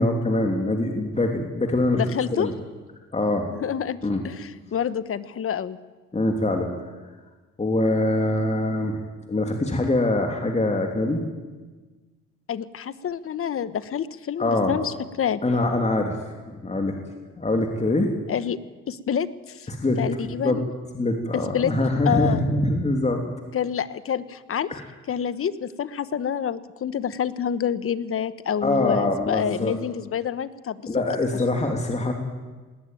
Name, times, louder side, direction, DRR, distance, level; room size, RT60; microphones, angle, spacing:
voice 1, 0.0-2.0 2.3-2.5 3.1-3.5 4.0-4.2 6.1-6.7 7.6-9.0 9.3-11.2 14.4-14.7 15.4-16.2 16.5-17.0 17.3-18.1 19.7-20.6 20.9-23.2 24.7-24.8 28.6-29.7 30.9-32.1, left 2 dB, 20° left, 3 dB, 3.0 m, -23 dB
voice 2, 1.9-2.5 3.5-4.0 4.2-5.8 12.5-15.4 18.3-18.6 18.9-19.7 20.0-20.6 21.3-21.7 22.1-22.4 23.5-24.7 25.1-30.9, left 8 dB, 45° left, 15 dB, 1.2 m, -27 dB
19.5 x 18.0 x 9.3 m, 1.3 s
supercardioid pair, 80°, 30 cm